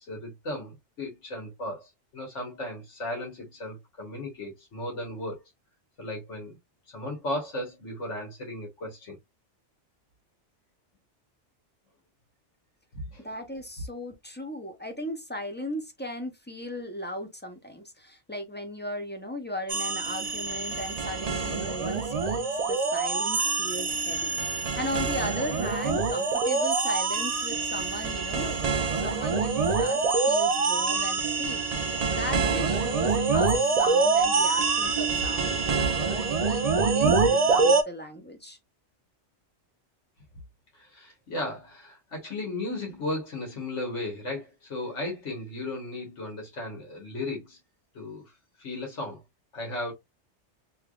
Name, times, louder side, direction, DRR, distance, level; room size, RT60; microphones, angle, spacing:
voice 1, 0.1-5.4 6.0-6.6 6.9-9.2 12.9-13.2 40.7-47.6 47.9-48.3 48.6-49.2 49.5-49.9, left 1 dB, 85° left, 1.7 m, -35 dB
voice 2, 13.2-38.6, left 1 dB, 15° left, 0.5 m, -37 dB
sound 1, 19.7-37.8, right 4 dB, 45° right, 0.5 m, -25 dB
3.3 x 3.2 x 2.3 m
omnidirectional pair, 1.2 m